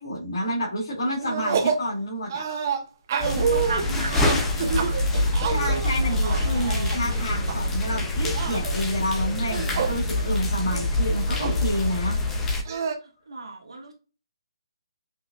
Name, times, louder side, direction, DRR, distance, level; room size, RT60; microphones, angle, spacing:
voice 1, 0.0-2.4 5.4-12.2, equal, 55° left, -7 dB, 1.8 m, -29 dB
sound 1, 1.2-1.9 2.3-7.5 7.9-8.8 9.4-10.0 10.4-10.5 10.7-11.6 12.7-12.9, right 6 dB, 35° right, 0.6 m, -28 dB
sound 2, 3.2-12.6, left 1 dB, 10° left, 0.5 m, -25 dB
voice 2, 3.4-4.5 13.3-13.9, right 3 dB, 80° right, 2 dB, 1.4 m, -34 dB
5.3 x 2.4 x 2.3 m, 0.33 s
hypercardioid pair, 160°, 3 cm